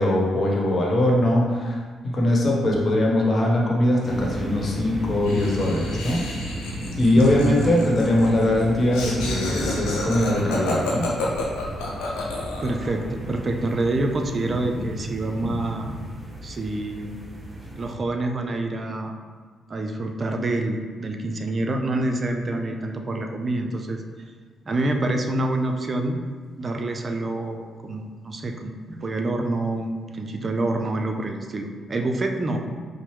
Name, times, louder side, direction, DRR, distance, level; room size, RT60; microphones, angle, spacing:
voice 1, 0.0-1.8 2.0-6.3 7.0-11.1, left 1 dB, 40° left, -2 dB, 1.0 m, -21 dB
sound 1, 4.0-17.9, equal, 10° right, 1.4 m, -34 dB
Laughter, 5.2-12.8, left 2 dB, 70° left, 0.6 m, -31 dB
voice 2, 7.2-7.7 12.6-16.0 16.4-17.1 17.8-19.1 19.7-24.0 24.7-26.2 26.6-32.7, right 2 dB, 40° right, 4 dB, 0.5 m, -27 dB
5.2 x 2.0 x 3.3 m, 1.5 s
hypercardioid pair, 40°, 0 cm